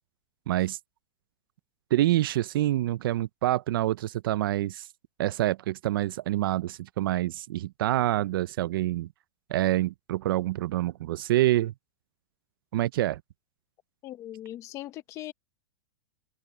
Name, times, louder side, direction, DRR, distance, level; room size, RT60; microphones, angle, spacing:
voice 1, 0.5-0.8 1.9-4.9 5.2-9.1 9.5-11.7 12.7-13.2, right 15 dB, 50° right, 0.4 m, -26 dB
voice 2, 14.0-15.3, left 14 dB, 20° left, 0.9 m, -39 dB
supercardioid pair, 175°, 15 cm